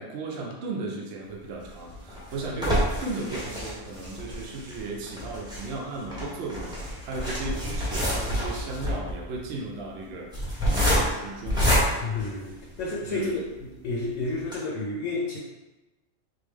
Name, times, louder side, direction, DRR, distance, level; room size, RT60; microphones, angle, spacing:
voice 1, 0.0-11.7 13.1-13.4, right 3 dB, 65° right, -1 dB, 0.9 m, -35 dB
sound 1, 1.6-13.0 13.5-13.6 13.9-14.0 14.4-14.5, equal, 5° right, 0.9 m, -28 dB
voice 2, 12.0-15.4, left 3 dB, 75° left, -3 dB, 1.0 m, -31 dB
3.8 x 2.7 x 3.4 m, 1.1 s
omnidirectional pair, 1.3 m